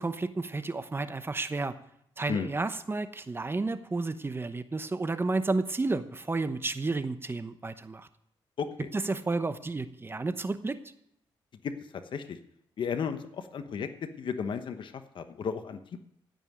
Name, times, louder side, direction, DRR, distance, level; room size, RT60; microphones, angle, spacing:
voice 1, 0.0-1.7 2.2-8.1 8.9-10.8, right 3 dB, 25° right, 11 dB, 0.9 m, -31 dB
voice 2, 8.6-8.9 11.6-11.7 12.1-12.4 12.8-16.0, left 6 dB, 60° left, 8 dB, 1.0 m, -34 dB
16.0 x 5.5 x 9.0 m, 0.75 s
cardioid pair, 85°, 9 cm